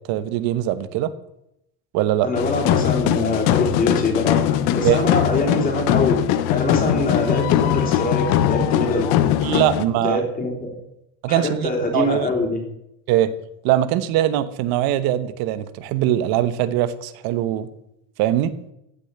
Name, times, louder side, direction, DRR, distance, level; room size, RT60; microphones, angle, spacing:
voice 1, 0.1-1.1 1.9-2.3 4.8-5.0 9.4-10.2 11.2-12.3 13.1-13.3 13.6-17.7 18.2-18.5, right 13 dB, 60° right, 13 dB, 1.2 m, -21 dB
voice 2, 2.2-4.4 4.7-6.2 6.5-9.2 10.0-10.8 11.3-12.6, left 2 dB, 20° left, 1 dB, 3.2 m, -23 dB
sound 1, 2.4-9.8, left 11 dB, 65° left, 1.1 m, -20 dB
15.0 x 6.7 x 8.9 m, 0.82 s
cardioid pair, 170°, 41 cm